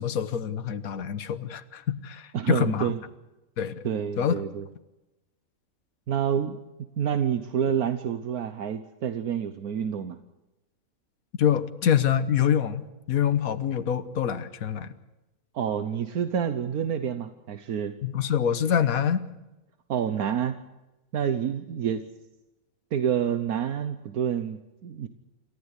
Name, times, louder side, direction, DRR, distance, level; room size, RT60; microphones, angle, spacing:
voice 1, 0.0-2.9 3.6-3.8 4.2-4.3 11.4-14.9 18.0-19.2, left 8 dB, 75° left, 11 dB, 1.5 m, -25 dB
voice 2, 2.3-3.0 3.8-4.7 6.1-6.6 7.0-10.2 15.5-17.9 19.9-20.5 21.1-22.0 22.9-25.1, right 8 dB, 80° right, 10 dB, 1.5 m, -28 dB
27.5 x 14.5 x 8.3 m, 1.0 s
omnidirectional pair, 1.5 m